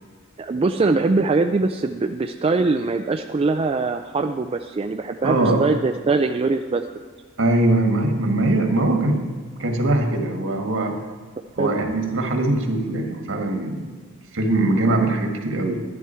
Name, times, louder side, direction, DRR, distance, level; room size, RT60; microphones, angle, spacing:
voice 1, 0.4-6.8 11.6-11.7, right 3 dB, 25° right, 6 dB, 0.4 m, -22 dB
voice 2, 5.2-5.7 7.4-9.2 9.6-11.0 11.6-13.9 14.3-15.8, right 2 dB, 65° right, 4 dB, 1.6 m, -21 dB
11.5 x 11.0 x 4.4 m, 1.4 s
head